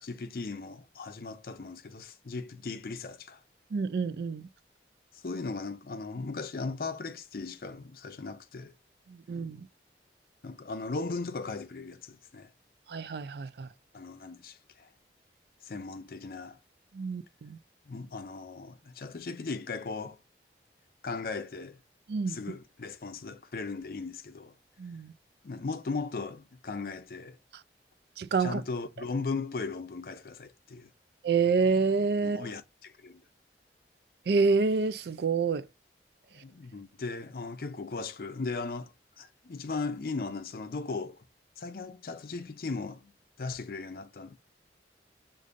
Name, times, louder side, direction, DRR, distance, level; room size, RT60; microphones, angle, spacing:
voice 1, 0.0-3.4 5.2-8.7 10.4-12.5 13.9-14.9 15.6-16.6 17.9-20.2 21.0-21.8 22.3-24.5 25.4-27.4 28.4-30.9 32.2-33.2 36.4-38.9 39.2-41.2 41.6-43.1 43.4-44.4, left 4 dB, 55° left, 0.5 m, -37 dB
voice 2, 3.7-4.5 9.3-9.7 12.9-13.7 16.9-17.6 22.1-22.4 24.8-25.1 28.2-28.6 31.2-32.5 34.3-35.6, right 4 dB, 65° right, 0.4 m, -27 dB
6.6 x 2.6 x 2.5 m
head